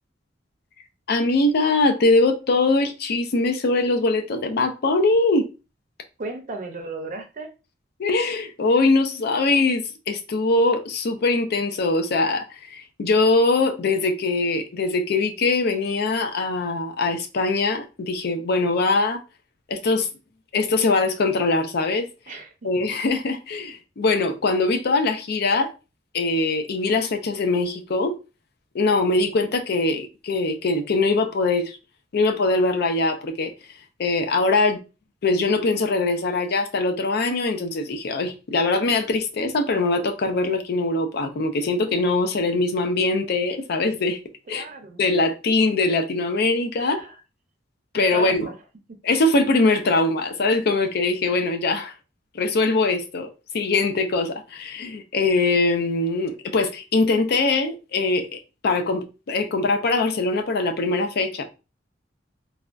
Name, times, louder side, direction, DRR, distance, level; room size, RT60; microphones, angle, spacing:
voice 1, 1.1-5.5 8.0-19.2 19.7-20.1 20.5-22.1 22.6-25.7 26.1-28.2 28.7-31.8 32.1-34.8 35.2-44.2 44.5-44.6 45.0-47.0 47.9-48.5 49.0-52.0 52.3-61.4, left 3 dB, 55° left, 0.4 m, -22 dB
voice 2, 6.2-7.5 22.3-22.5 29.4-29.5 44.5-45.0 46.8-47.1 47.9-48.5 48.9-49.0, right 3 dB, 45° right, 0.6 m, -35 dB
3.3 x 2.2 x 2.4 m
head